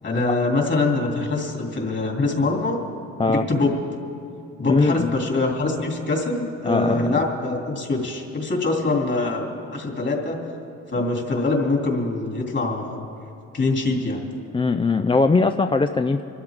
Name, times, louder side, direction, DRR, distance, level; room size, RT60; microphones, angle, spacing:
voice 1, 0.0-2.8 3.3-3.7 4.6-10.4 10.9-13.0 13.5-14.2, left 2 dB, 40° left, 0 dB, 3.0 m, -24 dB
voice 2, 4.7-5.1 6.6-7.2 14.5-16.2, left 3 dB, 20° left, 8 dB, 0.4 m, -20 dB
24.5 x 12.5 x 3.7 m, 2.6 s
cardioid pair, 90°, 30 cm